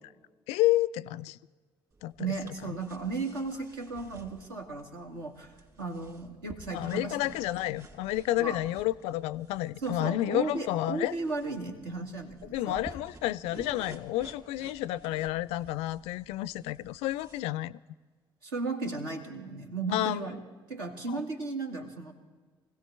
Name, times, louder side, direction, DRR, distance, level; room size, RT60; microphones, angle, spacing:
voice 1, 0.5-1.4 2.0-2.7 6.7-11.1 12.5-17.8 19.9-20.2 21.1-21.2, left 15 dB, 60° left, 0.4 m, -30 dB
sound 1, 1.9-17.4, right 2 dB, 30° right, 2.4 m, -53 dB
voice 2, 2.2-7.1 8.4-8.6 9.8-12.8 18.4-20.4 20.7-22.1, right 3 dB, 75° right, 1.6 m, -35 dB
24.5 x 16.5 x 3.3 m
figure-of-eight pair, 45°, 12 cm